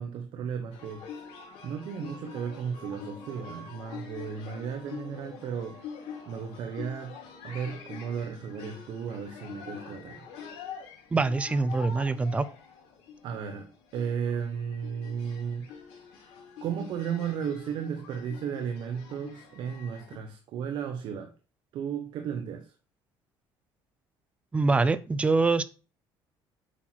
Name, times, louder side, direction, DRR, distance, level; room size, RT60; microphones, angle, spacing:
voice 1, 0.0-1.3 1.6-5.8 6.3-7.2 7.4-10.3 13.2-15.7 16.6-21.3 21.7-22.7, right 7 dB, 55° right, 1.1 m, -34 dB
sound 1, 0.7-20.2, left 6 dB, 80° left, 3.4 m, -45 dB
voice 2, 11.1-12.5 24.5-25.6, right 3 dB, 15° right, 0.5 m, -24 dB
8.5 x 5.9 x 4.6 m
cardioid pair, 160°, 9 cm